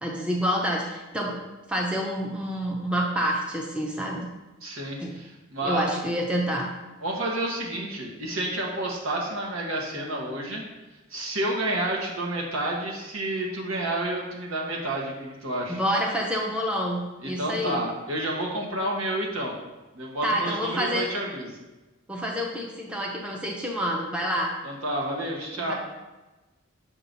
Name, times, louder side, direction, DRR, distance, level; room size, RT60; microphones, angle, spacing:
voice 1, 0.0-1.4 1.7-4.3 5.0-5.1 5.6-6.7 15.7-17.8 20.2-21.1 22.1-24.5 25.5-25.7, equal, 5° right, -1 dB, 0.6 m, -28 dB
voice 2, 4.6-6.0 7.0-10.6 11.1-15.8 17.2-19.5 19.9-21.6 24.6-25.7, right 1 dB, 80° right, -2 dB, 1.2 m, -30 dB
6.3 x 2.9 x 5.2 m, 1.1 s
head